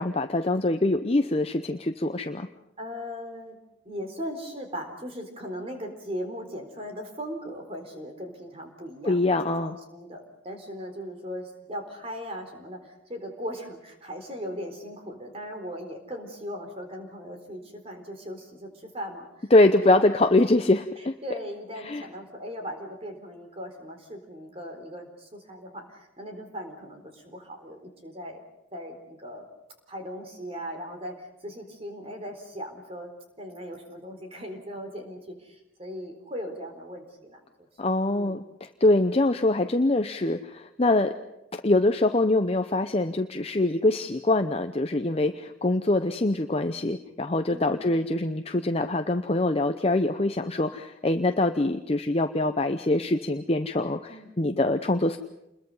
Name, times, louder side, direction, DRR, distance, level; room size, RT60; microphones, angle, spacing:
voice 1, 0.0-2.5 9.1-9.8 19.5-21.1 21.8-22.0 37.8-41.1 41.5-55.2, left 2 dB, 30° left, 7 dB, 0.7 m, -24 dB
voice 2, 2.8-3.6 3.8-9.2 9.4-20.2 21.0-28.4 28.7-29.4 29.9-33.1 33.4-37.9 38.2-38.4 47.5-47.9 54.1-54.3, equal, 30° right, 4 dB, 4.0 m, -38 dB
28.5 x 21.5 x 5.6 m, 0.89 s
head